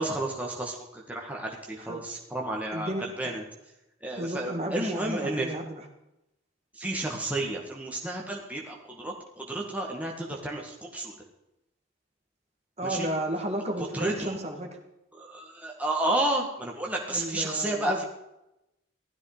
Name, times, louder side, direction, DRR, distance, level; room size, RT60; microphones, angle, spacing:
voice 1, 0.0-3.4 4.0-5.5 6.7-11.1 12.8-13.1 13.9-14.4 15.1-18.0, right 1 dB, 5° right, -1 dB, 1.9 m, -31 dB
voice 2, 2.7-3.3 4.2-5.9 12.8-14.7 17.1-18.0, right 1 dB, 30° right, 3 dB, 2.3 m, -33 dB
16.5 x 13.0 x 5.1 m, 0.89 s
head